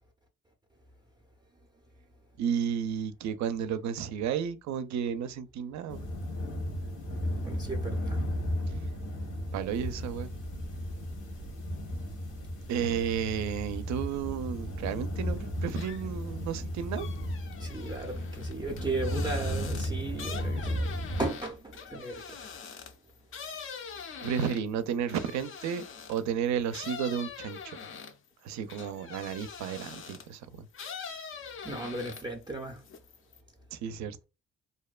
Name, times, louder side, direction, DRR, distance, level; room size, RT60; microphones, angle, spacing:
voice 1, 2.4-6.1 9.5-10.3 12.7-17.1 24.2-25.8 26.1-27.8 28.4-30.7 33.7-34.3, right 8 dB, 65° right, 0.4 m, -32 dB
sound 1, 5.9-21.3, equal, 80° left, 1.1 m, -34 dB
voice 2, 7.4-8.2 17.6-20.9 21.2-22.4 31.6-32.8, right 2 dB, 15° right, 0.5 m, -36 dB
sound 2, 15.7-16.2 16.6-26.3 26.7-30.4 30.7-32.4 32.8-33.4, left 6 dB, 45° left, 0.5 m, -44 dB
2.7 x 2.1 x 2.3 m
cardioid pair, 90°, 30 cm